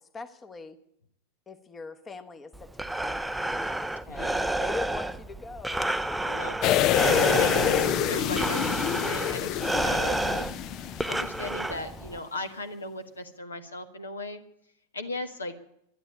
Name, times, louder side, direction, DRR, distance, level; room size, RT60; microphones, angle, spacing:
voice 1, 0.1-0.8 1.5-5.8 6.9-8.2, left 3 dB, 20° left, 8 dB, 1.1 m, -42 dB
Breathing, 2.5-12.2, right 1 dB, 5° right, 0.6 m, -30 dB
voice 2, 4.1-4.5 6.2-6.6 7.3-7.6 8.1-14.4 14.9-15.5, left 2 dB, 75° left, 8 dB, 1.6 m, -37 dB
sound 1, 6.6-11.4 11.8-11.9, left 12 dB, 35° left, 0.6 m, -26 dB
sound 2, 7.0-9.8 11.3-11.4, right 9 dB, 60° right, 0.6 m, -36 dB
12.0 x 11.5 x 10.0 m, 0.76 s
figure-of-eight pair, 90°, 0 cm